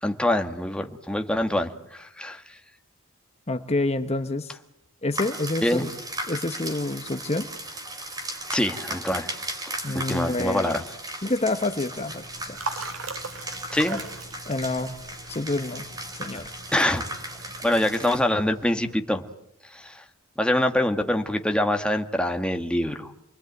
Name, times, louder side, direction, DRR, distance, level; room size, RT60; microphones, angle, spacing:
voice 1, 0.0-2.6 5.6-5.8 8.5-9.5 9.9-10.8 13.7-14.0 16.7-17.0 17.6-19.2 19.6-20.0 20.4-23.1, left 1 dB, 5° left, 5 dB, 1.5 m, -25 dB
voice 2, 3.5-4.6 5.0-5.9 6.3-7.5 9.8-10.7 11.2-12.9 13.9-14.0 14.5-15.0 15.3-15.9 16.2-16.6, left 2 dB, 30° left, 8 dB, 1.0 m, -28 dB
sound 1, 5.1-18.2, right 1 dB, 15° right, 3.9 m, -37 dB
sound 2, 11.9-18.9, right 3 dB, 60° right, 3.1 m, -40 dB
28.5 x 21.5 x 9.2 m, 0.82 s
head